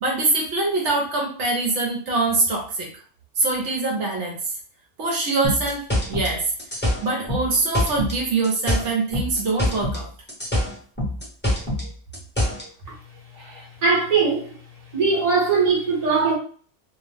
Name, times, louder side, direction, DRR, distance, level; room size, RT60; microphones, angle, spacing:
voice 1, 0.0-2.9 3.4-4.4 5.0-5.8 6.1-6.5 7.0-10.1 13.4-13.6, right 3 dB, 75° right, 1.0 m, -23 dB
sound 1, 5.4-8.2 8.4-10.0 10.3-12.7, left 1 dB, 10° left, 0.7 m, -24 dB
voice 2, 13.8-14.5 14.9-16.3, right 4 dB, 35° right, 0.9 m, -20 dB
2.4 x 2.0 x 3.1 m
omnidirectional pair, 1.3 m